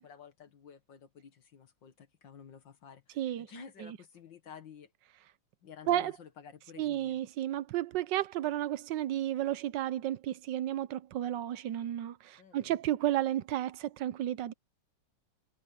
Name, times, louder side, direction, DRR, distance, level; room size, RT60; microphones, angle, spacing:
voice 1, 0.0-4.9 5.6-7.2 12.4-12.8, left 7 dB, 90° left, 2.4 m, -52 dB
voice 2, 3.2-3.5 3.8-4.0 5.9-6.1 6.8-14.5, right 13 dB, 80° right, 1.4 m, -32 dB
omnidirectional pair, 1.9 m